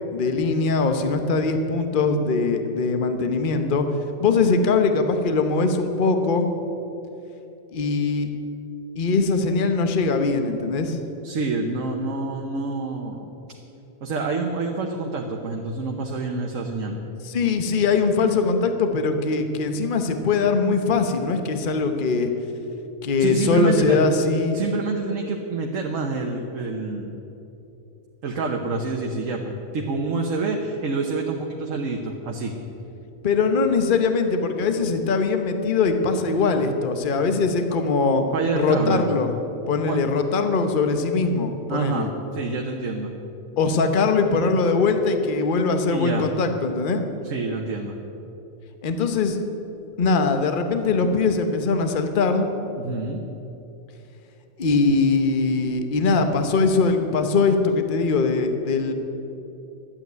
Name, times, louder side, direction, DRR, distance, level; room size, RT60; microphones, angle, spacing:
voice 1, 0.1-3.9 4.2-6.5 7.7-8.3 9.0-11.0 17.2-22.3 23.0-24.6 33.2-38.2 38.5-39.3 39.7-42.1 43.6-47.0 48.8-49.4 50.0-52.5 54.6-58.9, left 4 dB, 40° left, 7 dB, 1.0 m, -21 dB
voice 2, 11.2-13.3 14.0-17.0 23.2-24.0 24.5-27.1 28.2-32.5 38.3-39.1 39.8-40.0 41.7-43.1 45.9-46.3 47.2-48.0 52.8-53.2, right 3 dB, 70° right, 1 dB, 1.4 m, -27 dB
12.0 x 8.8 x 9.3 m, 2.9 s
omnidirectional pair, 1.4 m